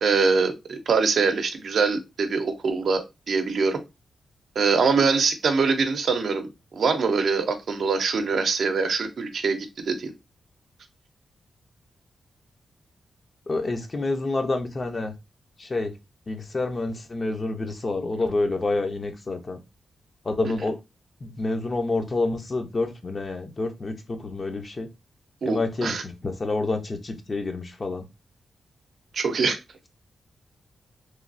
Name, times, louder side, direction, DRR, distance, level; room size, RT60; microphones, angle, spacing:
voice 1, 0.0-3.8 4.6-10.1 25.4-26.0 29.1-29.6, right 4 dB, 70° right, 0.5 m, -23 dB
voice 2, 13.5-15.1 15.6-15.9 16.3-19.6 20.2-20.8 21.2-24.9 25.4-28.1, left 2 dB, 35° left, 0.5 m, -28 dB
3.1 x 2.3 x 2.5 m
cardioid pair, 95°, 0 cm